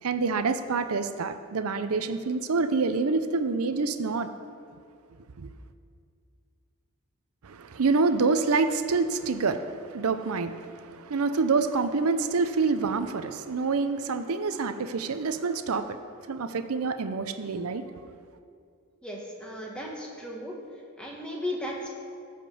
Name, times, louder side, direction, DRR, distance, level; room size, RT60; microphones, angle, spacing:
voice 1, 0.0-4.3 5.4-5.5 7.4-16.0 16.3-17.8, right 4 dB, 80° right, 9 dB, 0.6 m, -27 dB
voice 2, 19.0-20.5 21.0-21.9, left 1 dB, 5° left, -2 dB, 1.5 m, -35 dB
12.5 x 5.1 x 7.0 m, 2.3 s
head